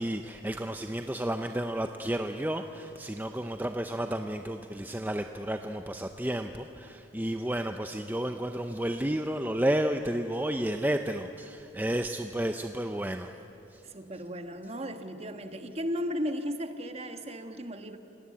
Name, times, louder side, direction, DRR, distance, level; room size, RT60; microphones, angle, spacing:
voice 1, 0.0-13.3 13.7-13.8, right 1 dB, 10° right, 6 dB, 0.6 m, -31 dB
voice 2, 13.8-18.0, equal, 30° right, 7 dB, 1.4 m, -35 dB
28.0 x 19.0 x 8.6 m, 2.9 s
head